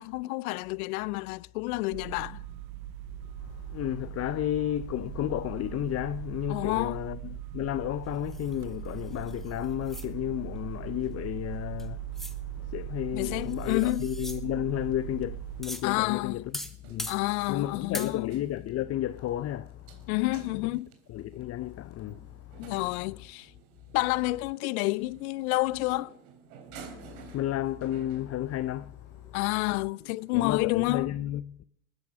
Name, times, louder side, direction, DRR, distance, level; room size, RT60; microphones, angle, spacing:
voice 1, 0.0-2.4 6.5-7.0 13.1-14.1 15.8-16.4 17.1-18.4 20.1-20.9 22.6-23.5 23.9-26.1 29.3-31.1, left 21 dB, 70° left, 0.7 m, -29 dB
sound 1, 1.9-15.6, right 21 dB, 55° right, 0.7 m, -40 dB
voice 2, 3.4-16.6 16.9-17.1 17.5-20.1 21.1-22.7 23.1-23.2 27.0-29.4 29.7-29.8 30.3-31.6, left 13 dB, 35° left, 0.6 m, -33 dB
sound 2, 8.3-10.1 11.8-11.9 12.1-12.4 13.3-14.4 15.6-15.9 16.5-17.2 17.9-18.1, equal, ahead, 1.6 m, -40 dB
sound 3, 15.5-31.0, right 6 dB, 75° right, 3.4 m, -53 dB
20.5 x 10.5 x 6.1 m
hypercardioid pair, 80°, 44 cm